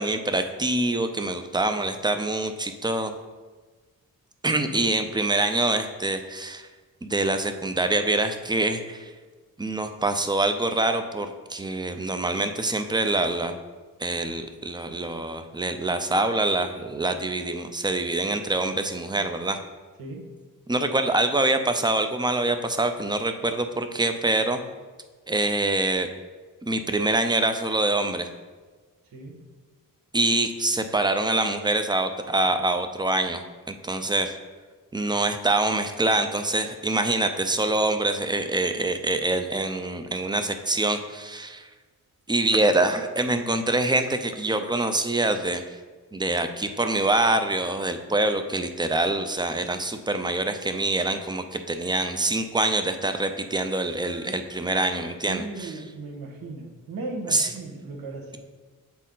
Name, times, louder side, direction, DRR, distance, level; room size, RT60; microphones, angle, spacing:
voice 1, 0.0-3.1 4.4-6.7 7.0-9.1 9.6-13.6 14.0-19.6 20.7-24.6 25.3-26.1 26.6-28.3 30.1-33.4 33.7-34.3 34.9-41.7 42.3-45.6 46.1-55.7 57.3-57.5, right 2 dB, 15° right, 7 dB, 0.4 m, -25 dB
voice 2, 20.0-20.3 29.1-29.4 55.2-58.4, right 3 dB, 85° right, 0 dB, 1.3 m, -36 dB
8.1 x 4.3 x 3.8 m, 1.4 s
wide cardioid pair, 140°, 34 cm